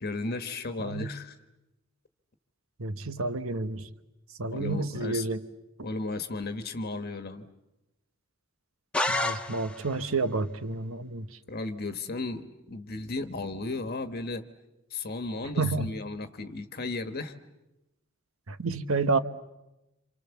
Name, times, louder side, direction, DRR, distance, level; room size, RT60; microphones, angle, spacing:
voice 1, 0.0-1.3 4.5-5.2 5.8-7.5 11.5-14.4 14.9-17.3, left 3 dB, 50° left, 8 dB, 1.4 m, -34 dB
voice 2, 0.8-1.1 2.8-3.9 4.4-5.5 9.1-11.4 15.6-15.9 18.5-19.2, right 3 dB, 80° right, 12 dB, 1.1 m, -30 dB
sound 1, 8.9-10.0, left 2 dB, 5° left, 1.0 m, -29 dB
28.0 x 27.0 x 7.1 m, 0.94 s
head